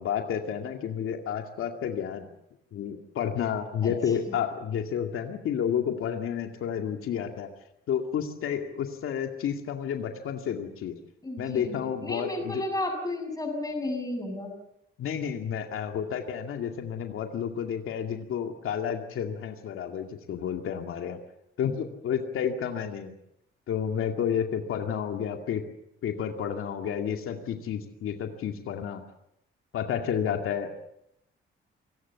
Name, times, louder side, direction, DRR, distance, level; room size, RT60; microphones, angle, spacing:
voice 1, 0.0-2.3 2.7-7.5 7.9-10.9 11.4-12.6 15.0-21.2 21.6-23.1 23.7-25.6 26.0-29.0 29.7-30.8, left 8 dB, 85° left, 5 dB, 2.3 m, -31 dB
voice 2, 11.2-14.5, left 2 dB, 15° left, 4 dB, 7.0 m, -33 dB
27.5 x 18.5 x 7.2 m, 0.78 s
cardioid pair, 135°, 21 cm